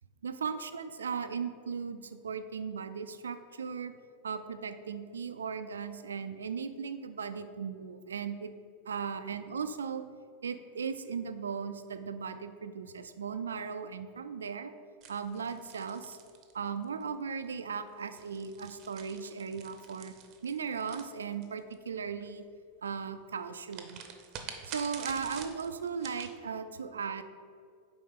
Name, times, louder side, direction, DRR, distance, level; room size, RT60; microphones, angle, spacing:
voice 1, 0.2-4.0 4.2-8.5 8.9-10.1 10.4-14.7 15.1-16.2 16.5-20.2 20.4-22.5 22.8-24.0 24.6-27.2, right 6 dB, 90° right, 11 dB, 0.3 m, -37 dB
sound 1, 15.0-17.0 18.0-21.7 23.7-26.3, right 7 dB, 45° right, 0.7 m, -47 dB
4.9 x 3.8 x 5.6 m, 2.2 s
hypercardioid pair, 100°, 0 cm